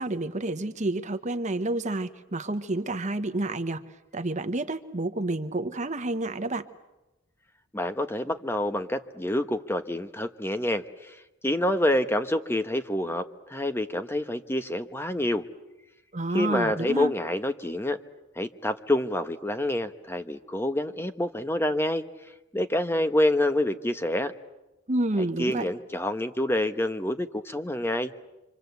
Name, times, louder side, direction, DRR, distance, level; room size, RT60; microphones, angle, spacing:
voice 1, 0.0-3.8 4.1-6.7 16.1-17.1 24.9-25.7, right 2 dB, 35° right, 9 dB, 1.1 m, -29 dB
voice 2, 7.7-11.1 11.4-13.2 13.5-15.4 16.3-18.0 18.4-22.0 22.5-24.3 25.2-28.1, left 1 dB, 10° left, 9 dB, 1.1 m, -27 dB
26.5 x 26.0 x 8.1 m, 0.98 s
head